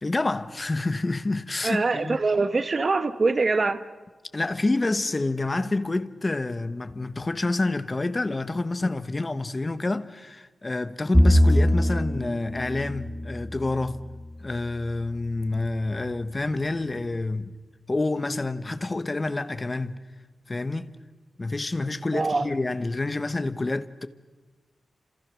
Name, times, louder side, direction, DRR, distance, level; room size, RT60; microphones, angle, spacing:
voice 1, 0.0-2.2 4.3-14.0 14.4-17.6 17.9-20.0 20.5-20.9 21.4-24.1, left 2 dB, 25° left, 1.1 m, -28 dB
voice 2, 1.6-3.8 22.1-22.5, right 3 dB, 40° right, 1.3 m, -23 dB
Bowed string instrument, 11.1-14.6, equal, 5° right, 3.2 m, -23 dB
30.0 x 27.0 x 6.3 m
wide cardioid pair, 130°, 0 cm